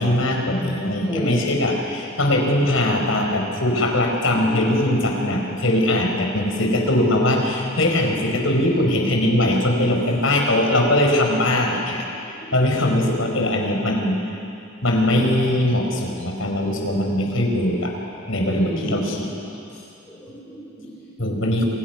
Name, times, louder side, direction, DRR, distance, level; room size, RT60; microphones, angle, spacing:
voice 1, 0.0-12.0 12.5-14.2 14.8-17.9 18.3-19.3 21.2-21.6, left 1 dB, 75° left, 1 dB, 5.0 m, -21 dB
voice 2, 1.1-1.4 3.8-3.9 4.4-4.9 5.2-5.3 12.3-12.5 13.9-14.0 18.3-19.0 20.1-21.3, equal, 10° left, -10 dB, 6.0 m, -33 dB
29.0 x 26.5 x 6.1 m, 2.7 s
head